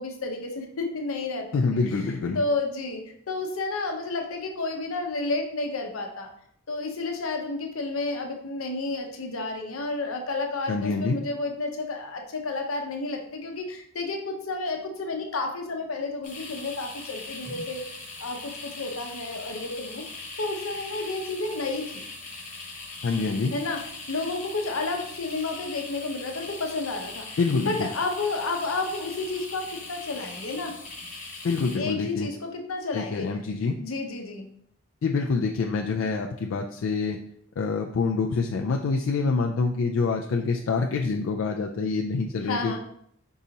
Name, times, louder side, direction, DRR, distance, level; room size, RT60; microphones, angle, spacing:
voice 1, 0.0-6.3 6.7-17.8 18.2-22.0 23.5-27.4 27.7-30.8 31.8-33.3 33.8-34.5 42.4-42.8, left 3 dB, 90° left, 3 dB, 0.8 m, -31 dB
voice 2, 1.5-2.4 10.7-11.2 23.0-23.5 27.4-27.9 31.4-32.3 32.9-33.7 35.0-37.2 37.6-42.8, left 4 dB, 70° left, 1 dB, 0.4 m, -26 dB
sound 1, 16.2-31.8, left 3 dB, 40° left, 1.2 m, -40 dB
4.7 x 2.8 x 3.9 m, 0.68 s
head